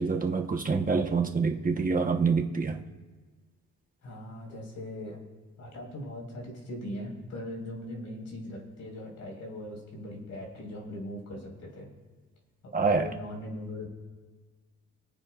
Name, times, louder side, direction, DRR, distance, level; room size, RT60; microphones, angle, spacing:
voice 1, 0.0-2.8 12.7-13.1, right 4 dB, 30° right, 4 dB, 1.1 m, -26 dB
voice 2, 4.0-5.2 5.6-11.9 12.6-13.9, left 1 dB, 70° left, 0 dB, 4.5 m, -40 dB
24.0 x 9.6 x 2.4 m, 1.4 s
cardioid pair, 90°, 30 cm